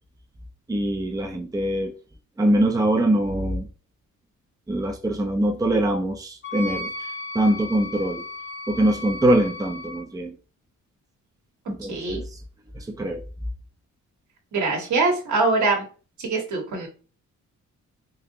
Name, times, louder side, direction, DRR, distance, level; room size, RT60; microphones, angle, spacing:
voice 1, 0.7-1.9 2.4-3.7 4.7-6.9 7.3-8.2 8.7-10.3 11.7-12.3 12.7-13.2, right 1 dB, 10° right, 0.6 m, -23 dB
Wind instrument woodwind instrument, 6.4-10.0, left 2 dB, 40° left, 1.2 m, -35 dB
voice 2, 11.9-12.2 14.5-15.8 16.2-16.9, right 3 dB, 70° right, 1.5 m, -23 dB
3.9 x 2.8 x 2.7 m
cardioid pair, 90°, 30 cm